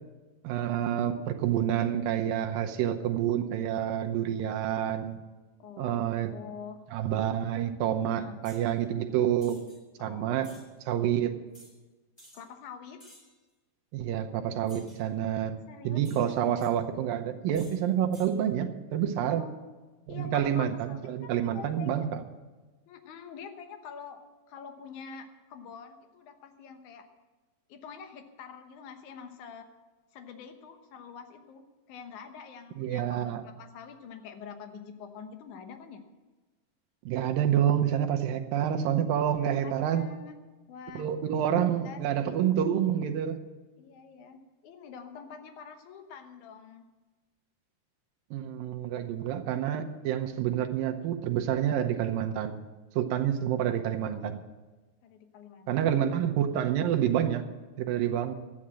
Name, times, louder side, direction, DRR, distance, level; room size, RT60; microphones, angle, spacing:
voice 1, 0.4-5.2 5.8-6.3 6.9-9.6 10.0-10.5 10.9-11.3 13.9-15.6 15.8-19.4 20.1-22.2 32.8-33.4 37.1-40.0 41.0-43.4 48.3-52.6 53.0-54.4 55.7-57.5 57.8-58.3, right 10 dB, 75° right, 4 dB, 2.3 m, -28 dB
voice 2, 5.6-6.8 8.2-8.4 10.0-10.6 11.0-11.3 12.3-13.0 15.7-16.1 19.3-19.7 20.1-22.1 22.9-27.0 27.7-29.7 30.1-36.0 39.3-40.4 40.7-41.1 41.6-42.4 43.8-44.4 44.6-46.9 55.0-55.9, left 6 dB, 65° left, 7 dB, 2.0 m, -46 dB
sound 1, 8.4-8.7 9.4-9.8 10.4-10.7 11.5-11.7 12.2-12.4 13.0-13.4 14.7-15.0 16.0-16.7 17.5-17.8 18.1-18.3, equal, 15° left, 2.5 m, -54 dB
13.0 x 9.8 x 7.5 m, 1.2 s
omnidirectional pair, 4.7 m